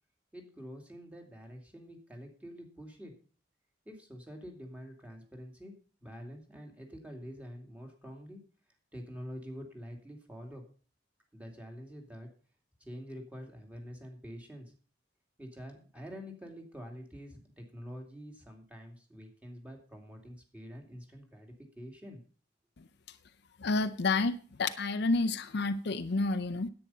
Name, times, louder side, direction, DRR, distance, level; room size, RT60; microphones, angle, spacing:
voice 1, 0.3-3.1 3.9-5.7 6.0-8.4 8.9-10.6 11.3-12.3 12.8-14.7 15.4-22.2, equal, 10° right, 2.6 m, -46 dB
voice 2, 23.6-26.7, left 3 dB, 60° left, 0.6 m, -30 dB
10.0 x 8.9 x 5.6 m
head